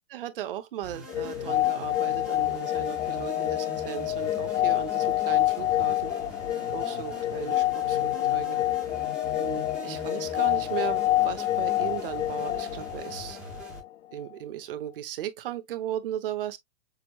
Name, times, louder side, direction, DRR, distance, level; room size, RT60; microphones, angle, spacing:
voice 1, 0.1-6.1 6.7-8.6 9.3-13.4 14.1-16.6, right 11 dB, 45° right, 0.9 m, -36 dB
sound 1, 0.8-13.8, right 1 dB, 5° right, 0.5 m, -43 dB
sound 2, 1.1-13.9, left 15 dB, 60° left, 0.8 m, -27 dB
6.8 x 2.3 x 2.9 m
hypercardioid pair, 165°, 40 cm